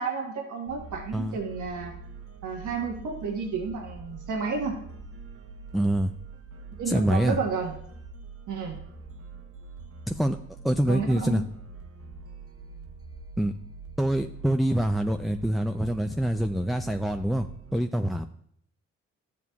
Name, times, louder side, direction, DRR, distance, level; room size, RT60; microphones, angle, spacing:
voice 1, 0.0-1.9 2.4-4.8 6.8-7.7 8.5-8.8 10.9-11.4, right 4 dB, 80° right, 1 dB, 1.2 m, -31 dB
sound 1, 0.7-17.7, right 4 dB, 50° right, 0.9 m, -44 dB
voice 2, 5.7-6.1 6.9-7.4 10.1-10.4 10.6-11.4 13.4-13.5 14.0-18.3, right 1 dB, ahead, 6 dB, 0.4 m, -25 dB
12.5 x 7.3 x 2.3 m, 0.67 s
cardioid pair, 65°, 30 cm